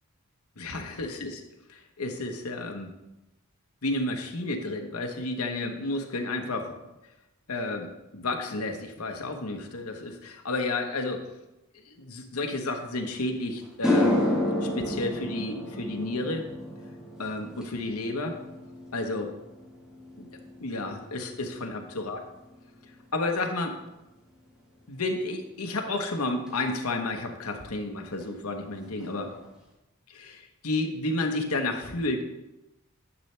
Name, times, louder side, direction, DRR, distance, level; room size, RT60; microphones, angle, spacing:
voice 1, 0.6-1.4 1.7-2.9 3.8-6.7 7.5-11.2 11.9-14.2 14.6-16.5 17.2-18.4 18.9-19.3 20.2-20.3 20.6-22.2 23.1-23.8 24.9-29.3 30.1-32.3, left 2 dB, 80° left, 4 dB, 1.1 m, -31 dB
sound 1, 13.1-13.2 13.6-22.1 22.4-22.9 26.5-26.6 28.2-28.3 28.6-28.7 29.0-29.5, left 1 dB, 5° right, 1.5 m, -31 dB
10.0 x 6.7 x 3.3 m, 0.96 s
head